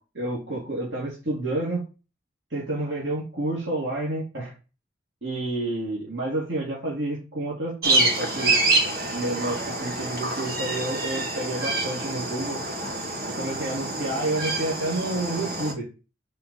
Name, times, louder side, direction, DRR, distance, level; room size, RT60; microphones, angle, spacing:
voice 1, 0.1-1.9 2.5-4.5 5.2-8.6 9.1-12.6 13.3-15.9, right 2 dB, 80° right, -6 dB, 2.8 m, -29 dB
sound 1, 7.8-15.7, right 2 dB, 50° right, 1.5 m, -27 dB
5.7 x 4.6 x 5.6 m, 0.32 s
head